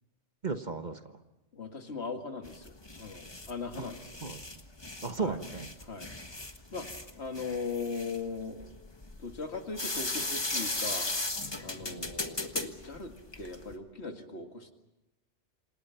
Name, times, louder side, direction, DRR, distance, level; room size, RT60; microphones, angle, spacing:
voice 1, 0.4-1.0 3.8-3.9 4.2-4.6 5.0-5.7 11.8-12.1, right 4 dB, 40° right, 7 dB, 1.3 m, -35 dB
voice 2, 1.5-4.1 5.2-5.4 5.8-6.9 7.2-8.7 9.2-11.1 11.6-14.7, left 4 dB, 60° left, 5 dB, 2.3 m, -39 dB
sound 1, 2.4-13.8, left 2 dB, 20° left, 1.5 m, -37 dB
28.5 x 26.5 x 5.8 m, 0.98 s
omnidirectional pair, 1.2 m